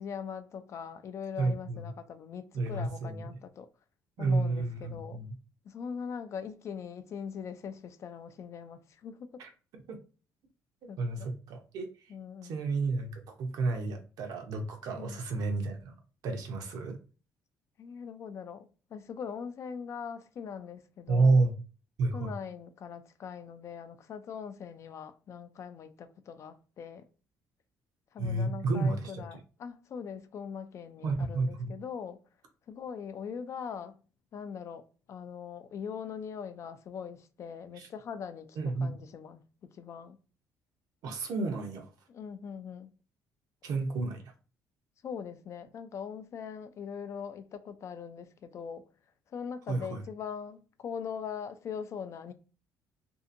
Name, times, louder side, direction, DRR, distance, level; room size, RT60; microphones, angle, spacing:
voice 1, 0.0-3.7 4.2-5.2 5.6-9.4 10.9-11.3 12.1-12.5 14.9-15.2 17.8-21.5 22.1-27.0 28.1-32.2 32.7-34.0 34.3-40.2 42.1-42.9 45.0-48.8 49.3-52.3, left 7 dB, 50° left, 0.3 m, -41 dB
voice 2, 1.4-1.9 2.5-3.3 4.2-5.4 9.4-9.5 9.9-10.0 11.0-11.9 12.4-15.9 16.2-17.0 21.1-21.5 22.0-22.3 28.2-29.2 31.0-31.7 37.8-37.9 38.6-38.9 41.0-41.9 43.6-44.2 49.7-50.0, right 3 dB, 70° right, 0.7 m, -30 dB
2.7 x 2.4 x 2.5 m
cardioid pair, 115°, 7 cm